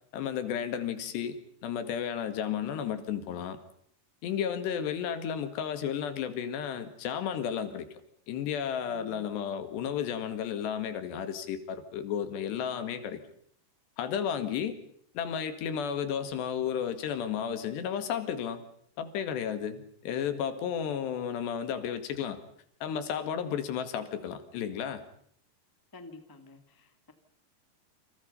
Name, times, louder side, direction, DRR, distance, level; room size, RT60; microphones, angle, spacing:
voice 1, 0.1-1.4 1.6-3.6 4.2-7.9 8.3-13.2 14.0-14.8 15.2-18.6 19.0-22.4 22.8-25.0, left 8 dB, 80° left, 4.1 m, -33 dB
voice 2, 8.9-9.2 25.9-27.1, left 3 dB, 10° left, 0.9 m, -49 dB
28.5 x 26.5 x 5.6 m
omnidirectional pair, 4.8 m